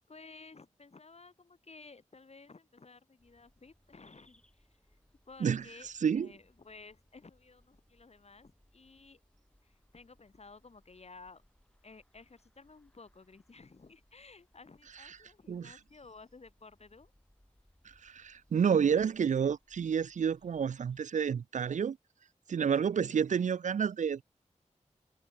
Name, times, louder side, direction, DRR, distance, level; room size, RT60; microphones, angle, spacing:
voice 1, 0.1-5.0 5.2-5.9 6.1-9.2 9.6-11.4 11.8-17.1, left 4 dB, 55° left, 6.6 m, -55 dB
sound 1, 3.2-21.0, equal, 5° left, 6.0 m, -69 dB
voice 2, 5.4-6.3 15.5-15.8 17.8-22.0 22.5-24.2, right 7 dB, 70° right, 0.4 m, -30 dB
wide cardioid pair, 90°, 13 cm